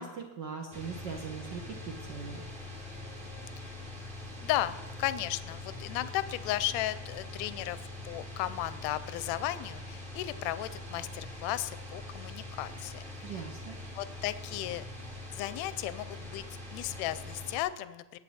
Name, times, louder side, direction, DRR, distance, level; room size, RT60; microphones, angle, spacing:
voice 1, 0.0-2.4 13.2-13.8, right 5 dB, 70° right, 3 dB, 1.0 m, -40 dB
sound 1, 0.7-17.6, left 2 dB, 20° right, 2.0 m, -43 dB
voice 2, 4.4-7.8 8.0-13.0 13.9-14.8 15.3-18.2, left 14 dB, 80° left, 15 dB, 1.7 m, -35 dB
21.0 x 8.6 x 4.3 m, 1.2 s
omnidirectional pair, 3.6 m